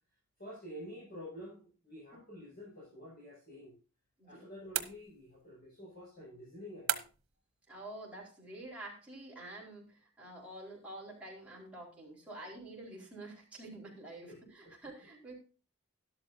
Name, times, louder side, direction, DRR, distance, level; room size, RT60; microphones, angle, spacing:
voice 1, 0.4-3.7 4.3-7.1 14.3-14.9, equal, 50° left, -6 dB, 6.4 m, -49 dB
sound 1, 4.7-5.5 6.9-7.4, right 11 dB, 80° right, 1.1 m, -36 dB
voice 2, 7.7-15.3, right 1 dB, 5° right, -5 dB, 4.6 m, -48 dB
12.5 x 11.5 x 2.7 m, 0.34 s
head